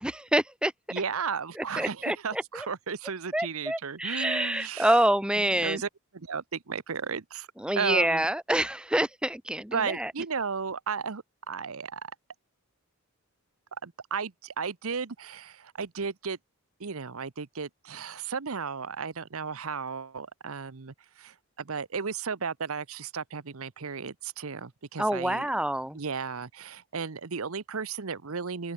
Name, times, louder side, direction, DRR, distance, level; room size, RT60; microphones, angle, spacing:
voice 1, 0.0-0.7 1.8-2.7 3.3-5.8 7.6-10.1 25.0-26.0, right 1 dB, 5° right, 1.1 m, -27 dB
voice 2, 0.9-5.0 5.5-7.5 7.8-8.3 9.7-12.1 13.8-16.4 16.8-25.5 25.9-28.7, right 5 dB, 75° right, 0.9 m, -34 dB
open air
head